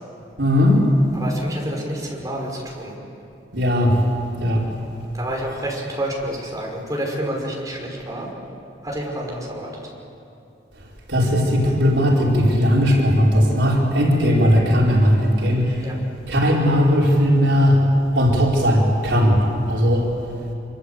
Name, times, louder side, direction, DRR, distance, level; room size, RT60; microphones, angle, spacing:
voice 1, 0.4-0.9 3.5-4.0 4.4-4.6 11.1-15.9 16.3-17.8 18.1-19.4 19.7-20.1, equal, 85° right, -3 dB, 4.9 m, -17 dB
voice 2, 1.1-2.9 5.1-8.3 8.8-9.7 15.8-16.0, right 1 dB, 20° right, -2 dB, 5.8 m, -29 dB
25.5 x 24.5 x 8.3 m, 2.7 s
head